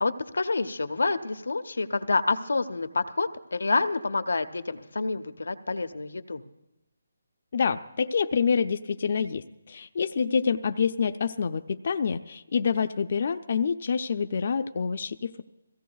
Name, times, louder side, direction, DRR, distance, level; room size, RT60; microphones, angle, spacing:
voice 1, 0.0-6.4, left 3 dB, 90° left, 8 dB, 0.7 m, -28 dB
voice 2, 7.5-15.4, left 6 dB, 45° left, 9 dB, 0.4 m, -27 dB
22.5 x 16.0 x 2.3 m, 0.95 s
hypercardioid pair, 170°, 0 cm